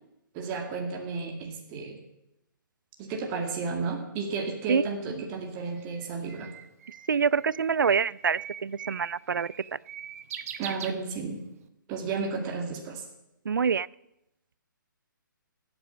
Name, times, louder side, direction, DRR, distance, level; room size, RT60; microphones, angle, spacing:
voice 1, 0.3-2.0 3.0-6.5 10.6-11.4 11.9-13.0, right 4 dB, 25° right, 1 dB, 2.3 m, -33 dB
Bird, 5.3-11.6, right 9 dB, 45° right, 1.1 m, -42 dB
voice 2, 7.1-9.8 13.5-13.9, right 6 dB, 75° right, 23 dB, 0.4 m, -26 dB
16.5 x 8.7 x 6.0 m, 0.85 s
figure-of-eight pair, 140°, 11 cm